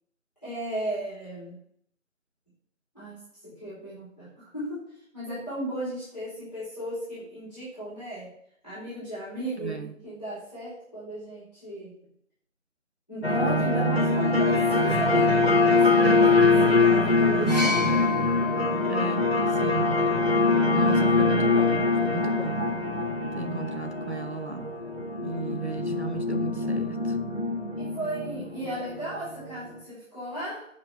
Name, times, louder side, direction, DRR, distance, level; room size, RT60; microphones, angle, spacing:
voice 1, 0.4-1.5 2.9-3.2 3.4-4.3 4.5-4.8 5.1-8.3 8.6-11.9 13.1-15.3 15.7-18.0 27.8-30.7, right 1 dB, 5° left, 3.5 m, -35 dB
voice 2, 9.6-10.0 16.6-16.9 18.9-20.3 20.7-22.7 23.3-24.7 25.2-27.2, right 3 dB, 55° right, 0.5 m, -35 dB
sound 1, 13.2-29.6, left 3 dB, 45° left, 1.1 m, -23 dB
sound 2, 17.5-21.3 22.3-22.5, left 6 dB, 30° right, 1.3 m, -33 dB
7.6 x 5.0 x 6.9 m
figure-of-eight pair, 175°, 40 cm